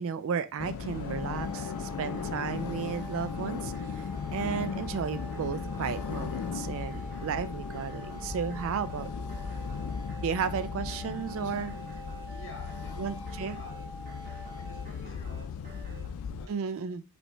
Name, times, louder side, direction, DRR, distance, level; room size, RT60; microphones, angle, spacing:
voice 1, 0.0-3.7 4.3-9.4 10.2-11.7 13.0-13.6 16.5-17.0, right 6 dB, 65° right, 0.4 m, -34 dB
sound 1, 0.6-16.5, left 6 dB, 90° left, 0.3 m, -37 dB
sound 2, 0.8-16.1, right 2 dB, 40° right, 1.0 m, -47 dB
sound 3, 1.1-14.8, equal, 10° right, 0.7 m, -47 dB
voice 2, 12.3-13.2 13.5-13.7 14.6-16.6, left 2 dB, 65° left, 1.2 m, -51 dB
5.1 x 3.2 x 3.2 m
head